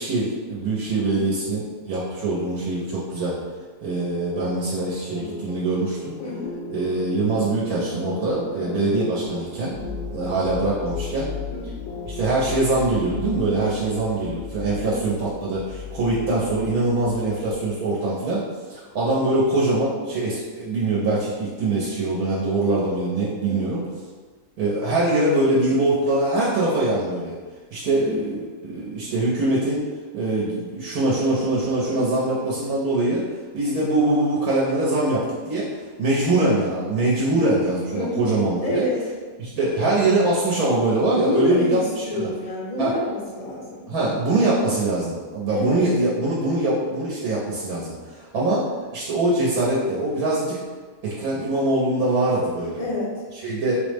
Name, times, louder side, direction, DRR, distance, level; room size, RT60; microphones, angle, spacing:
voice 1, 0.0-3.4 3.8-6.1 6.7-9.7 10.1-11.3 12.0-18.4 18.7-23.8 24.6-27.3 27.7-29.8 30.1-33.2 33.5-35.7 36.0-38.8 39.4-42.3 42.8-42.9 43.9-48.6 48.9-50.6 51.0-52.8 53.4-53.8, right 2 dB, 90° right, -6 dB, 1.2 m, -23 dB
sound 1, 4.3-13.6, left 2 dB, 75° left, 1.0 m, -37 dB
voice 2, 6.2-6.6 8.5-8.8 11.5-11.8 14.8-15.0 16.2-16.5 23.4-23.8 27.9-28.2 31.8-32.1 37.9-38.3 38.6-39.0 41.2-43.9 45.5-45.8 52.8-53.2, left 2 dB, 55° left, -5 dB, 0.4 m, -29 dB
sound 2, 9.7-17.5, left 6 dB, 50° right, 0.3 m, -37 dB
3.7 x 2.0 x 3.3 m, 1.4 s
omnidirectional pair, 1.5 m